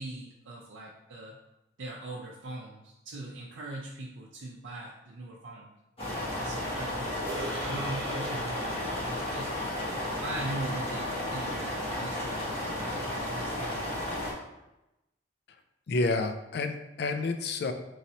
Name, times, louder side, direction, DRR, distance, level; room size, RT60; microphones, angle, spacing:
voice 1, 0.0-1.4 1.8-5.7 6.4-7.2 7.5-9.6 10.2-13.8, right 2 dB, 80° right, -4 dB, 0.5 m, -41 dB
sound 1, 6.0-14.3, left 1 dB, 30° left, 1.1 m, -33 dB
sound 2, 7.3-11.7, right 1 dB, 10° left, 1.3 m, -44 dB
voice 2, 15.9-17.7, left 3 dB, 60° left, 7 dB, 0.4 m, -29 dB
3.1 x 2.8 x 4.1 m, 0.94 s
head